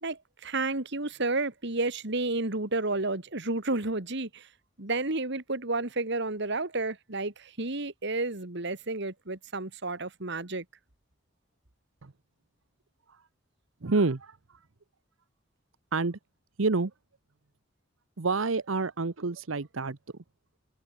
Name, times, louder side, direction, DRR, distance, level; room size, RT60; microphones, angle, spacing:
voice 1, 0.0-4.5 4.8-10.6, right 2 dB, 60° right, 2.4 m, -31 dB
voice 2, 13.8-14.4 15.9-16.2 16.6-16.9 18.2-20.0, right 3 dB, 80° right, 0.9 m, -28 dB
head